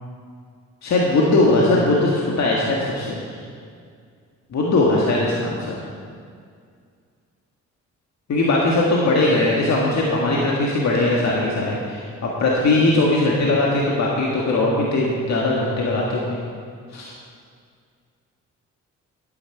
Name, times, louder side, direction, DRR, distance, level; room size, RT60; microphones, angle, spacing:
voice 1, 0.8-3.2 4.5-5.8 8.3-16.4 16.9-17.1, left 2 dB, 60° left, -3 dB, 1.8 m, -20 dB
11.0 x 9.2 x 4.7 m, 2.1 s
supercardioid pair, 60°, 31 cm